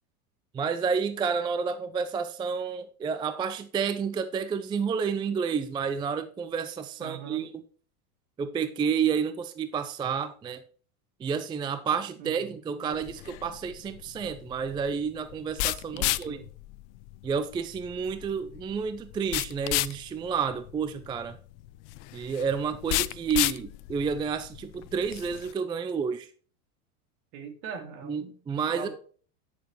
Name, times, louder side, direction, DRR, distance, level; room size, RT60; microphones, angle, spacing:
voice 1, 0.5-7.6 8.4-10.6 11.2-16.4 17.2-21.4 22.1-26.3 28.0-28.9, right 6 dB, 10° right, 0.4 m, -30 dB
voice 2, 7.0-7.4 12.2-12.6 15.9-16.5 27.3-28.4 28.7-28.9, right 6 dB, 55° right, 2.4 m, -41 dB
sound 1, 12.9-25.5, left 19 dB, 55° left, 0.5 m, -33 dB
9.5 x 6.6 x 3.1 m
hypercardioid pair, 100°, 43 cm